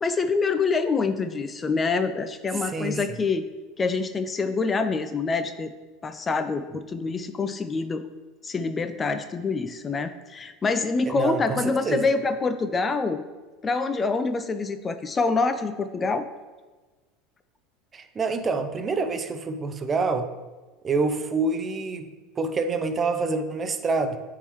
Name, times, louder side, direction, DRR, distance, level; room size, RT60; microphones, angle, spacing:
voice 1, 0.0-3.4 3.8-5.7 6.0-8.0 8.4-13.2 13.6-16.3, left 4 dB, 25° left, 10 dB, 0.4 m, -26 dB
voice 2, 2.5-3.1 11.1-12.0 17.9-20.3 20.8-22.1 22.4-24.2, right 4 dB, 25° right, 8 dB, 0.6 m, -27 dB
9.6 x 3.6 x 3.1 m, 1.3 s
supercardioid pair, 105°, 0 cm